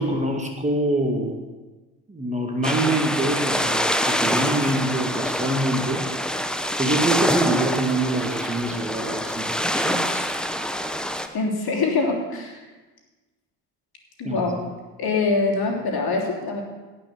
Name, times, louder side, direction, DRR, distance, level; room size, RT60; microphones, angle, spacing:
voice 1, 0.0-1.4 2.1-6.1 6.8-10.3 14.2-14.4, right 1 dB, 15° right, 2 dB, 2.0 m, -25 dB
sound 1, 2.6-11.3, equal, ahead, 1.0 m, -25 dB
voice 2, 11.3-12.6 14.2-14.6 15.0-16.6, left 3 dB, 50° left, 0 dB, 3.3 m, -24 dB
17.5 x 6.0 x 6.5 m, 1.2 s
hypercardioid pair, 55°, 46 cm